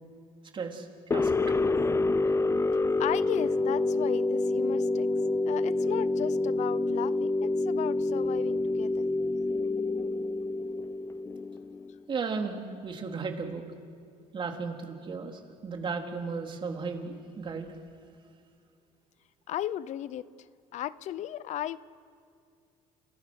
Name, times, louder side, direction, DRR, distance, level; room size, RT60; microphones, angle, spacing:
voice 1, 0.5-1.4 12.1-13.6 14.3-17.7, right 4 dB, 40° right, 3 dB, 4.0 m, -35 dB
sound 1, 1.1-12.0, left 2 dB, 20° left, 0.8 m, -27 dB
voice 2, 3.0-5.1 5.5-9.1 19.5-20.3 20.7-21.8, left 12 dB, 60° left, 17 dB, 0.8 m, -35 dB
30.0 x 29.0 x 6.5 m, 2.2 s
cardioid pair, 100°, 13 cm